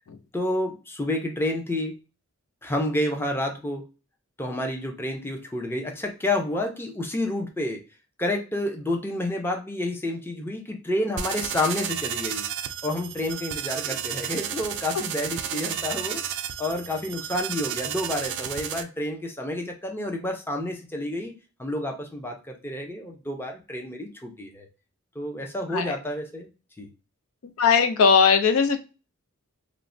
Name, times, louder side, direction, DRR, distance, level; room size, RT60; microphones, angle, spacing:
voice 1, 0.3-1.9 2.6-3.8 4.4-7.8 8.2-12.5 12.8-16.2 16.6-21.3 21.6-24.7 25.2-26.5 26.8-26.9, left 1 dB, 10° left, 2 dB, 0.5 m, -29 dB
sound 1, 11.2-18.8, right 9 dB, 55° right, 0.3 m, -32 dB
voice 2, 27.6-28.8, left 6 dB, 85° left, 8 dB, 0.5 m, -18 dB
3.1 x 2.0 x 2.5 m, 0.32 s
head